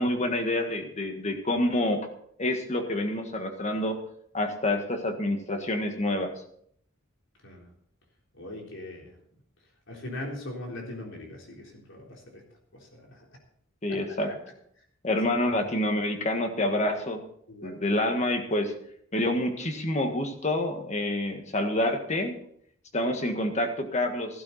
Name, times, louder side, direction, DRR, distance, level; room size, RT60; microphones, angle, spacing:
voice 1, 0.0-2.1 2.4-4.0 4.3-6.3 13.8-14.3 15.0-17.2 17.6-18.7 19.1-22.4 22.9-24.4, left 1 dB, 35° left, 6 dB, 1.7 m, -27 dB
voice 2, 8.4-9.1 9.9-12.4 12.7-13.3 13.9-14.0 14.3-14.4 17.5-17.9, left 1 dB, 65° left, 0 dB, 3.8 m, -40 dB
15.0 x 12.0 x 4.1 m, 0.66 s
head